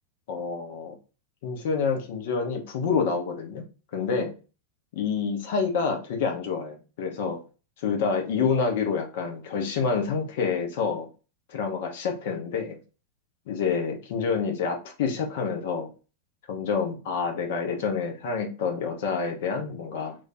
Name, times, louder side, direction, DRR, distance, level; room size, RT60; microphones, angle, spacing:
voice 1, 0.3-1.0 1.4-3.7 3.9-4.4 5.0-7.4 7.8-11.1 11.5-12.8 13.5-15.9 16.5-20.2, left 5 dB, 55° left, 3 dB, 0.7 m, -28 dB
2.5 x 2.3 x 4.0 m, 0.34 s
figure-of-eight pair, 90°, 0 cm